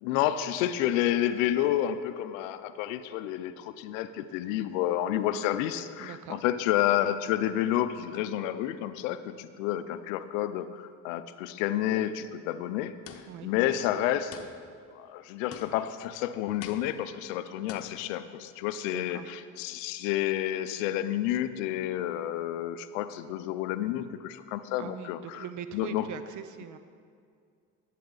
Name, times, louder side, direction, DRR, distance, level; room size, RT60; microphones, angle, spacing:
voice 1, 0.0-13.0 13.4-14.4 14.9-25.4 25.7-26.1, left 12 dB, 90° left, 12 dB, 0.5 m, -30 dB
voice 2, 6.0-6.4 13.3-13.5 18.9-19.3 24.8-26.8, right 8 dB, 55° right, 11 dB, 0.6 m, -41 dB
sound 1, 13.1-13.6 14.3-14.9 15.5-16.0 16.6-17.2 17.7-18.1, left 7 dB, 40° left, 0.9 m, -46 dB
12.0 x 7.5 x 3.9 m, 2.2 s
supercardioid pair, 75°, 37 cm